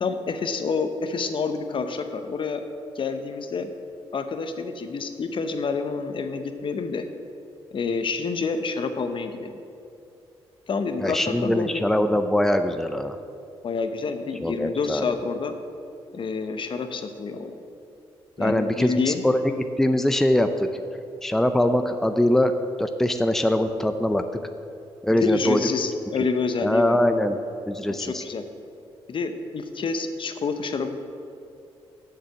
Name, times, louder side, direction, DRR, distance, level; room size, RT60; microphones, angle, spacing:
voice 1, 0.0-2.6 2.9-3.7 4.1-7.1 7.7-9.6 10.7-11.9 13.6-15.6 16.1-17.5 18.4-19.2 25.1-27.0 27.9-28.4 29.1-31.0, left 4 dB, 55° left, 8 dB, 0.8 m, -28 dB
voice 2, 11.0-13.2 14.4-15.0 18.4-20.7 21.2-22.5 22.8-24.2 25.0-25.6 26.6-27.4 27.7-28.2, left 1 dB, 5° left, 8 dB, 0.5 m, -22 dB
7.5 x 6.9 x 7.0 m, 2.6 s
cardioid pair, 65°, 11 cm